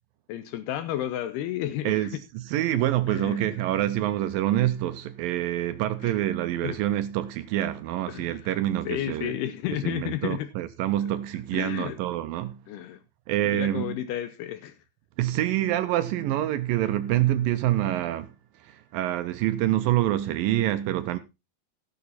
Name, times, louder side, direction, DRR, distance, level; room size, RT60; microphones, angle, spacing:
voice 1, 0.3-2.1 3.1-3.5 6.0-6.1 6.6-6.8 8.1-8.5 8.9-10.5 11.5-12.0 12.7-13.0 13.5-14.8, left 12 dB, 80° left, 2.8 m, -32 dB
voice 2, 1.8-9.4 9.7-12.6 13.3-14.0 15.2-21.2, right 13 dB, 80° right, 2.1 m, -26 dB
17.0 x 6.9 x 4.2 m
omnidirectional pair, 4.7 m